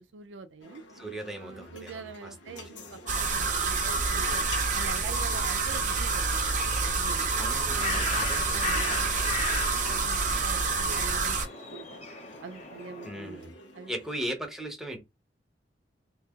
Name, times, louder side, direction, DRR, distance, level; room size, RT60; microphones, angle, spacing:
voice 1, 0.0-0.8 1.4-2.8 3.1-4.4 4.7-6.5 6.7-7.3 7.7-8.0 8.5-12.0 12.4-13.9, right 4 dB, 90° right, 0.5 m, -44 dB
sound 1, 0.6-14.3, left 1 dB, 80° left, 1.0 m, -48 dB
voice 2, 0.9-2.9 7.3-8.5 13.0-13.5 13.9-15.0, right 1 dB, ahead, 0.8 m, -38 dB
sound 2, 3.1-11.5, right 4 dB, 45° right, 0.7 m, -28 dB
Bird, 7.3-13.3, left 4 dB, 40° left, 0.7 m, -37 dB
2.8 x 2.8 x 3.6 m
head